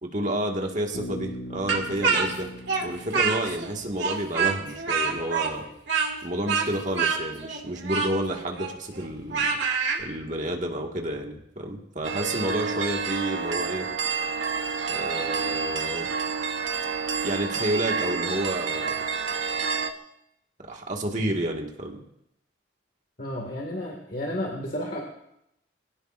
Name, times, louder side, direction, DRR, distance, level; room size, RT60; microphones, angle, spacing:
voice 1, 0.0-2.5 2.8-5.6 6.2-9.6 10.0-13.9 14.9-16.1 17.2-19.0 20.7-22.0, right 1 dB, 40° right, 1 dB, 1.9 m, -30 dB
Bass guitar, 0.9-4.6, left 1 dB, 85° left, 1.7 m, -41 dB
Speech, 1.7-3.7 4.0-10.0, right 5 dB, 65° right, 2.5 m, -26 dB
sound 1, 12.0-19.9, right 5 dB, 85° right, 1.1 m, -29 dB
voice 2, 23.2-25.0, left 1 dB, 45° left, 0 dB, 2.1 m, -32 dB
24.5 x 17.5 x 2.6 m, 0.79 s
head